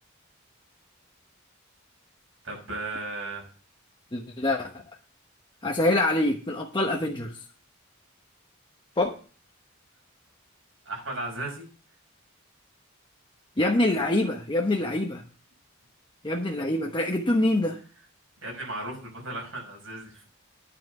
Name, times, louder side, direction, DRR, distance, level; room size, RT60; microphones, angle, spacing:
voice 1, 2.4-3.4 10.9-11.7 18.4-20.3, right 2 dB, 70° right, 0 dB, 5.6 m, -35 dB
voice 2, 4.1-4.8 5.6-7.3 9.0-9.2 13.6-15.2 16.2-17.8, left 1 dB, 25° left, 1 dB, 0.9 m, -25 dB
9.8 x 5.8 x 6.8 m, 0.39 s
head